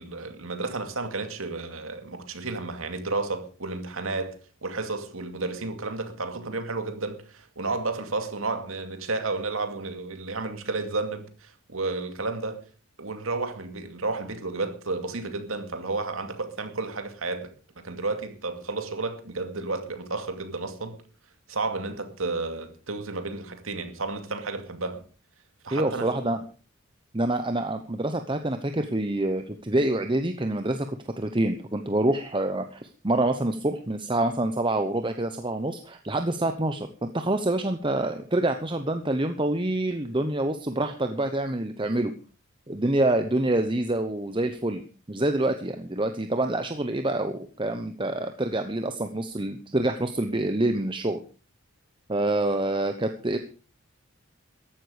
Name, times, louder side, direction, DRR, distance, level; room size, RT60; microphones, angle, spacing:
voice 1, 0.0-12.6 13.0-21.0 21.5-25.0 25.6-26.1, right 3 dB, 75° right, 2.4 m, -32 dB
voice 2, 25.7-26.4 27.1-42.1 42.7-44.8 45.1-51.2 52.1-53.4, right 1 dB, 25° right, 0.9 m, -26 dB
14.5 x 12.0 x 5.0 m
head